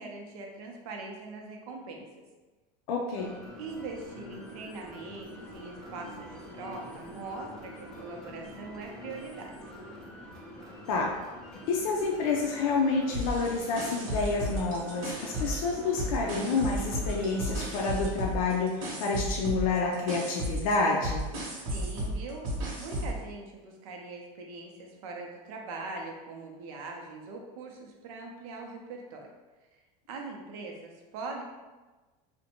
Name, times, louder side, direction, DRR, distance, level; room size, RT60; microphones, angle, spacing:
voice 1, 0.0-2.0 3.6-9.5 21.7-22.5 22.8-29.3 29.7-29.8 30.1-31.4, right 3 dB, 85° right, 1 dB, 0.6 m, -41 dB
voice 2, 2.9-3.3 10.9-11.1 11.7-21.3, left 4 dB, 85° left, -1 dB, 0.4 m, -28 dB
sound 1, 3.2-18.1, equal, 5° left, 0.4 m, -46 dB
sound 2, 13.1-15.7 16.0-23.2, right 1 dB, 65° right, 0.9 m, -34 dB
2.5 x 2.1 x 2.8 m, 1.2 s
supercardioid pair, 145°, 18 cm